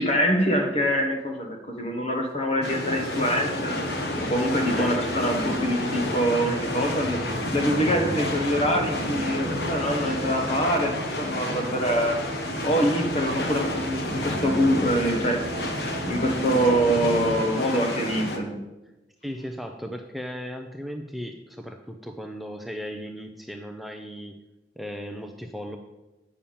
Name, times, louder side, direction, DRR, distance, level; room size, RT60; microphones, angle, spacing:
voice 1, 0.0-3.9 4.2-7.2 7.5-12.2 12.6-15.4 16.1-18.6, equal, 35° left, 4 dB, 1.2 m, -24 dB
sound 1, 2.6-18.4, left 1 dB, 60° left, 1.2 m, -31 dB
sound 2, 2.7-17.3, right 2 dB, 55° right, 1.1 m, -37 dB
voice 2, 4.8-5.2 19.2-24.4 24.8-25.8, equal, ahead, 4 dB, 0.4 m, -36 dB
sound 3, 6.4-11.8 14.0-15.0, equal, 30° right, 0.9 m, -38 dB
8.6 x 5.6 x 7.1 m, 1.0 s
head